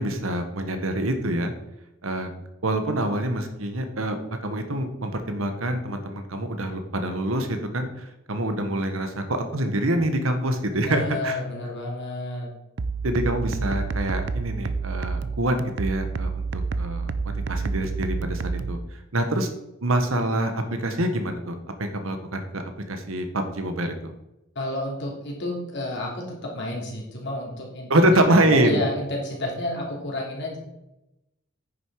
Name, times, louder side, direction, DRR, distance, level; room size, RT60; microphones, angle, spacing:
voice 1, 0.0-1.5 2.0-2.3 2.6-11.4 13.0-18.8 19.1-19.5 19.8-22.6 22.9-24.1 27.9-28.8, right 1 dB, 85° right, 7 dB, 1.4 m, -25 dB
voice 2, 10.7-12.5 24.5-30.6, left 1 dB, 60° left, -2 dB, 3.1 m, -31 dB
sound 1, 12.8-18.8, right 4 dB, 60° right, 0.6 m, -29 dB
9.7 x 6.8 x 4.9 m, 0.91 s
head